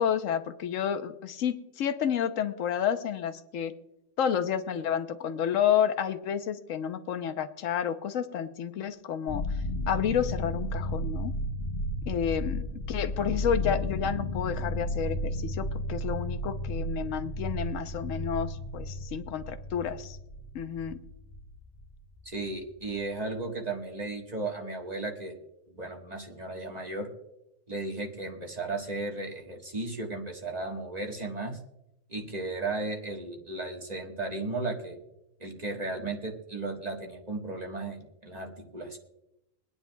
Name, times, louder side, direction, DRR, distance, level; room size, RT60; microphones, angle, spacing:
voice 1, 0.0-3.7 4.2-9.4 9.9-11.4 12.1-20.2 20.5-21.0, left 8 dB, 85° left, 10 dB, 1.1 m, -30 dB
sound 1, 9.3-23.2, left 1 dB, 45° left, 1.5 m, -34 dB
voice 2, 22.2-25.4 25.7-27.1 27.7-31.6 32.1-35.0 35.4-39.0, right 2 dB, 35° right, 0 dB, 1.5 m, -35 dB
23.0 x 9.8 x 2.3 m, 0.86 s
omnidirectional pair, 1.3 m